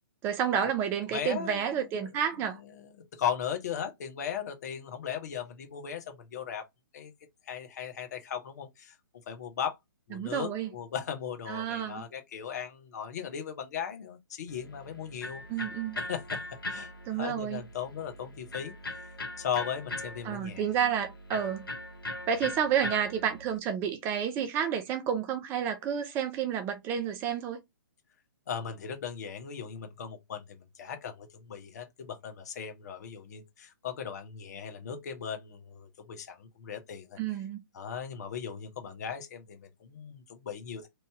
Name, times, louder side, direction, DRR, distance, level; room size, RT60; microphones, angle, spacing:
voice 1, 0.2-2.6 10.1-10.7 11.5-12.0 15.5-16.0 17.1-17.6 20.2-21.6 22.3-27.6 37.2-37.6, right 8 dB, 20° right, 0.4 m, -30 dB
voice 2, 1.1-2.1 2.6-6.6 6.9-7.1 7.5-9.0 9.3-9.7 10.1-15.4 16.1-16.4 16.7-18.7 19.4-20.7 28.5-37.2 37.7-40.9, left 8 dB, 50° left, 1.0 m, -37 dB
Electric guitar, 14.5-23.6, left 1 dB, 75° left, 1.1 m, -40 dB
3.1 x 2.8 x 3.4 m
figure-of-eight pair, 125°, 12 cm